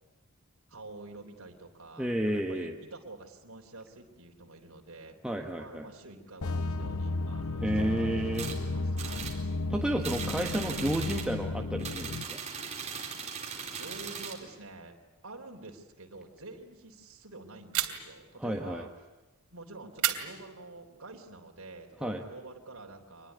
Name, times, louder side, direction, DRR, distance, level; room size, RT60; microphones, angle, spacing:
voice 1, 0.7-5.2 5.6-9.3 13.6-15.0 15.2-18.9 19.5-23.3, right 2 dB, 65° right, 2 dB, 3.6 m, -48 dB
voice 2, 2.0-2.7 5.2-5.8 7.6-8.5 9.7-12.4 18.4-18.8 22.0-22.2, right 1 dB, 5° right, 1 dB, 1.5 m, -31 dB
sound 1, 6.4-12.2, left 3 dB, 70° left, 0.9 m, -33 dB
sound 2, 8.3-8.6 9.0-9.4 10.0-11.3 11.8-14.4, right 6 dB, 30° right, 4.1 m, -39 dB
sound 3, 17.7-18.3 20.0-21.0, right 11 dB, 85° right, 2.8 m, -33 dB
25.5 x 21.0 x 9.6 m, 1.1 s
head